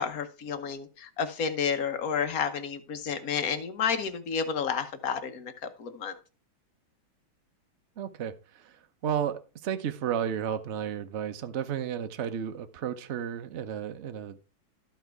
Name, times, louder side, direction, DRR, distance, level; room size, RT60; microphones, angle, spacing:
voice 1, 0.0-5.5 5.8-6.1, left 6 dB, 55° left, 1.1 m, -30 dB
voice 2, 8.0-14.4, right 9 dB, 70° right, 0.6 m, -33 dB
13.0 x 4.6 x 4.6 m
omnidirectional pair, 2.3 m